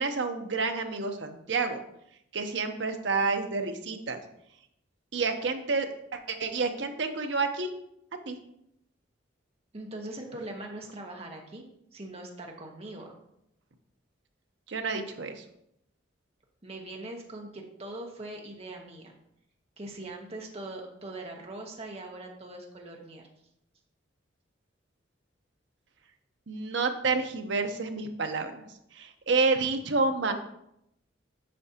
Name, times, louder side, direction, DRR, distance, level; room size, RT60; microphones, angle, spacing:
voice 1, 0.0-1.8 2.3-4.2 5.1-5.9 6.1-7.7 8.3-8.4 14.7-15.4 26.5-28.6 28.9-30.3, right 4 dB, 65° right, 6 dB, 0.7 m, -29 dB
voice 2, 9.7-11.6 11.9-13.1 16.6-19.1 19.8-23.3, right 2 dB, 30° right, 1 dB, 0.9 m, -41 dB
8.5 x 5.7 x 2.8 m, 0.78 s
head